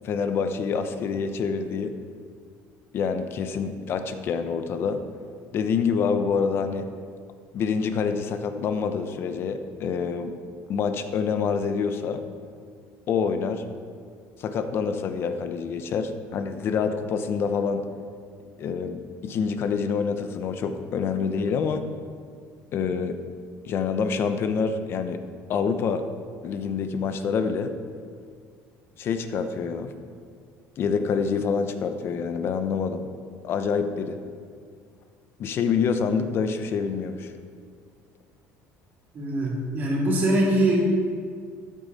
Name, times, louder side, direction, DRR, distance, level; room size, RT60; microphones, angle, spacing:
voice 1, 0.0-2.0 2.9-5.0 5.5-6.9 7.5-10.3 10.7-12.2 13.1-13.6 14.4-17.8 18.6-21.9 22.7-23.2 23.6-25.2 25.5-26.1 26.4-27.8 29.0-29.9 30.8-33.1 33.4-34.2 35.4-37.3, left 6 dB, 45° left, 8 dB, 0.9 m, -26 dB
voice 2, 39.1-40.9, right 1 dB, 35° right, -6 dB, 3.3 m, -22 dB
13.5 x 9.3 x 4.2 m, 2.1 s
cardioid pair, 145°, 6 cm